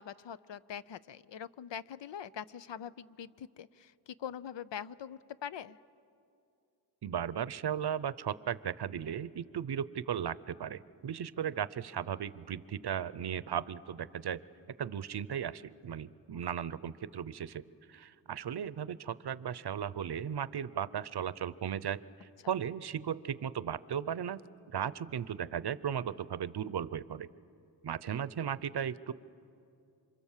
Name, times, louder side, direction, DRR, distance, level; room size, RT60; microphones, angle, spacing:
voice 1, 0.0-5.8, left 8 dB, 80° left, 16 dB, 0.6 m, -43 dB
voice 2, 7.0-14.4 14.8-17.6 17.9-24.4 24.7-27.3 27.8-29.1, right 8 dB, 65° right, 17 dB, 0.7 m, -36 dB
28.0 x 25.5 x 7.3 m, 2.6 s
wide cardioid pair, 75°, 43 cm